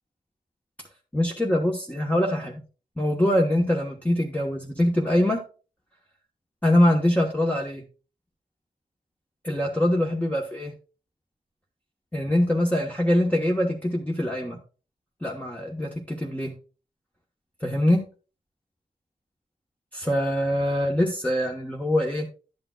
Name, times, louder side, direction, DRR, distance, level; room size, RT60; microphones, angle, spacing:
voice 1, 1.1-2.5 3.0-5.4 6.6-7.8 9.4-10.7 12.1-14.6 15.2-16.5 17.6-18.0 19.9-22.3, left 1 dB, 10° left, -1 dB, 1.1 m, -23 dB
11.0 x 8.7 x 2.3 m, 0.34 s
wide cardioid pair, 105°, 16 cm